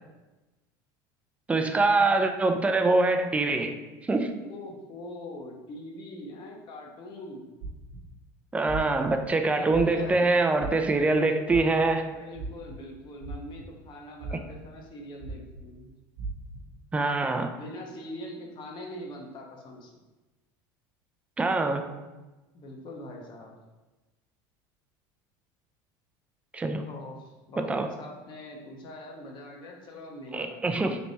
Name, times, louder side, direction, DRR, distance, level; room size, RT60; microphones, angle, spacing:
voice 1, 1.5-4.3 8.5-12.0 16.9-17.5 21.4-21.9 26.5-26.8 27.6-27.9 30.3-31.0, right 3 dB, 10° right, 6 dB, 0.4 m, -24 dB
voice 2, 4.4-7.5 9.5-10.3 10.9-11.3 12.1-15.9 17.6-19.9 22.5-23.6 26.9-30.9, left 1 dB, 45° left, 0 dB, 0.9 m, -43 dB
sound 1, 7.6-8.1 8.7-9.1 9.7-10.2 10.6-11.0 11.5-11.9 12.3-12.8 13.2-13.8 14.2-14.6 15.2-15.6 16.2-16.6, right 3 dB, 75° right, 0.8 m, -36 dB
3.4 x 2.9 x 4.0 m, 1.1 s
supercardioid pair, 110°, 11 cm